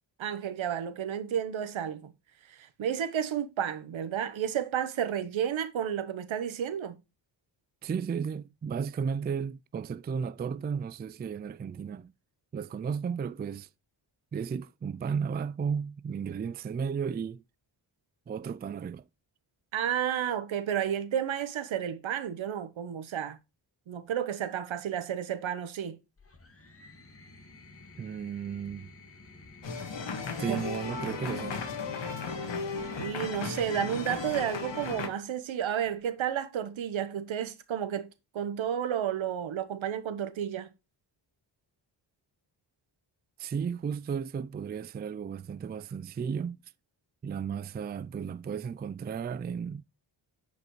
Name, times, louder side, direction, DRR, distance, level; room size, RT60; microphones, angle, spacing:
voice 1, 0.2-2.1 2.5-7.0 19.7-23.4 23.9-26.0 30.5-30.6 33.0-38.1 38.3-40.7, right 9 dB, 80° right, 1.2 m, -32 dB
voice 2, 7.8-12.1 12.5-13.7 14.3-17.4 18.3-19.0 28.0-28.9 30.4-31.6 43.4-46.6 47.2-49.8, right 6 dB, 25° right, 0.3 m, -34 dB
sound 1, 26.2-34.6 35.8-36.4, left 3 dB, 30° left, 2.0 m, -53 dB
sound 2, 29.6-35.1, left 4 dB, 65° left, 1.9 m, -35 dB
9.3 x 5.2 x 3.1 m
cardioid pair, 70°, 46 cm